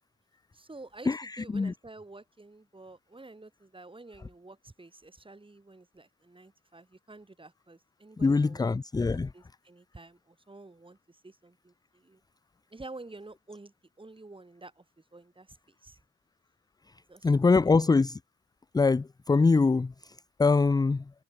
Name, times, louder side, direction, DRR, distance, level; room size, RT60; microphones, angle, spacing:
voice 1, 0.5-8.6 9.0-12.2 12.7-16.0 17.1-17.7, right 2 dB, 15° right, 6.0 m, -50 dB
voice 2, 1.1-1.7 8.2-9.3 17.2-18.2 18.7-21.1, left 4 dB, 15° left, 0.5 m, -24 dB
cardioid pair, 90°, 30 cm